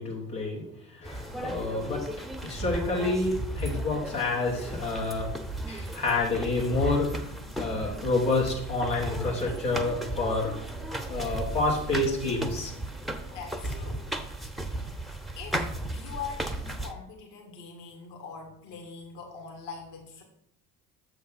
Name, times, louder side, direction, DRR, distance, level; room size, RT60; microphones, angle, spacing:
voice 1, 0.0-2.0 2.4-5.3 5.7-10.5 11.1-12.7, left 2 dB, 90° left, -4 dB, 1.7 m, -28 dB
sound 1, 1.0-16.9, right 1 dB, ahead, 0.6 m, -35 dB
voice 2, 13.3-14.0 14.7-15.0 15.4-15.6 15.9-20.2, left 6 dB, 60° left, 2 dB, 1.6 m, -42 dB
6.9 x 3.4 x 5.7 m, 0.73 s
hypercardioid pair, 60°, 47 cm